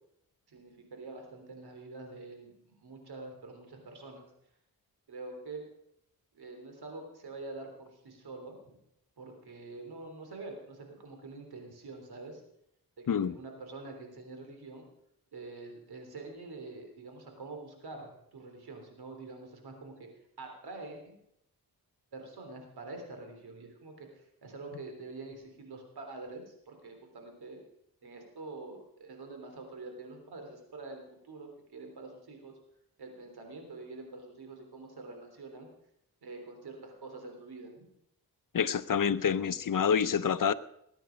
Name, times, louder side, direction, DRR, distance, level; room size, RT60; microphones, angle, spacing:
voice 1, 0.5-4.3 5.1-5.6 6.3-8.8 9.2-12.4 13.0-14.9 15.3-20.1 20.4-21.2 22.1-27.6 28.0-32.5 33.0-35.7 36.2-37.9, right 3 dB, 85° right, 4 dB, 3.5 m, -46 dB
voice 2, 38.5-40.5, left 7 dB, 60° left, 15 dB, 0.7 m, -27 dB
20.0 x 9.2 x 5.2 m, 0.77 s
cardioid pair, 55°, 37 cm